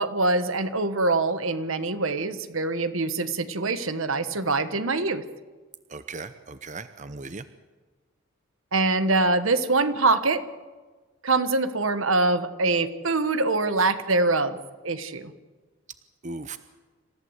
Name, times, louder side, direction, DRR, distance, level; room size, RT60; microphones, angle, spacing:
voice 1, 0.0-5.2 8.7-10.4 11.2-14.6 14.8-15.3, right 3 dB, 75° right, 11 dB, 1.5 m, -24 dB
voice 2, 5.9-7.4 16.2-16.6, right 3 dB, 35° right, 11 dB, 0.7 m, -37 dB
27.0 x 15.0 x 8.1 m, 1.3 s
head